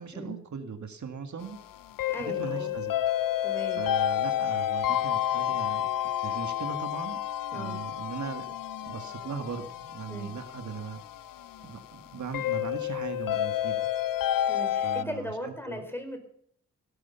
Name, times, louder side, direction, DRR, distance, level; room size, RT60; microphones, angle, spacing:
voice 1, 0.0-1.6 2.2-3.0 3.7-5.9 6.2-7.2 7.5-8.5 8.8-11.0 11.6-13.8 14.8-15.8, right 6 dB, 60° right, 6 dB, 1.8 m, -39 dB
sound 1, 1.4-15.0, left 11 dB, 85° left, 0.6 m, -30 dB
voice 2, 2.1-2.8 3.4-3.8 7.5-7.8 10.1-10.3 14.5-16.2, equal, 5° left, 6 dB, 4.6 m, -38 dB
17.5 x 12.5 x 5.8 m, 0.65 s
cardioid pair, 85°, 32 cm